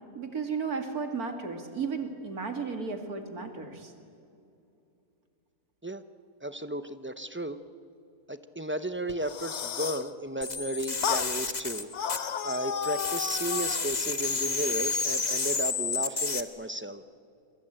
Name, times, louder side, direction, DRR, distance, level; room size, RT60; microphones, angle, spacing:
voice 1, 0.1-3.9, right 5 dB, 65° right, 5 dB, 2.7 m, -34 dB
voice 2, 6.4-7.6 8.3-11.9 12.4-17.0, right 1 dB, 15° right, 11 dB, 0.4 m, -34 dB
sound 1, 9.1-10.1 11.0-11.3 11.9-13.9, left 8 dB, 55° left, 1.0 m, -33 dB
sound 2, 10.4-12.6 12.8-16.4, left 4 dB, 30° left, 1.3 m, -30 dB
28.0 x 24.0 x 8.9 m, 2.7 s
omnidirectional pair, 1.7 m